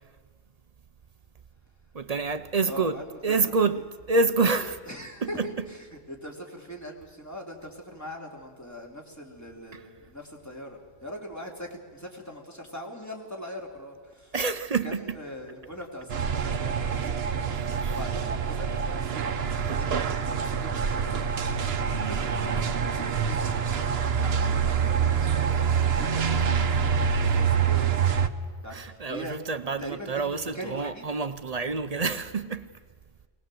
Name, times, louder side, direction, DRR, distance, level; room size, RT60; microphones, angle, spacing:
voice 1, 1.9-3.0 3.2-4.8 5.2-5.7 9.7-9.9 14.3-15.2 17.7-18.0 26.0-26.1 28.7-32.7, right 4 dB, 40° right, 0.7 m, -28 dB
voice 2, 2.6-3.4 3.7-3.8 4.4-4.5 4.9-5.4 5.7-14.3 14.8-19.4 19.6-28.3 28.6-29.4 29.8-31.1, equal, 15° left, 2.8 m, -42 dB
sound 1, 16.1-28.3, right 6 dB, 70° right, 1.1 m, -26 dB
22.5 x 19.0 x 7.6 m
omnidirectional pair, 1.1 m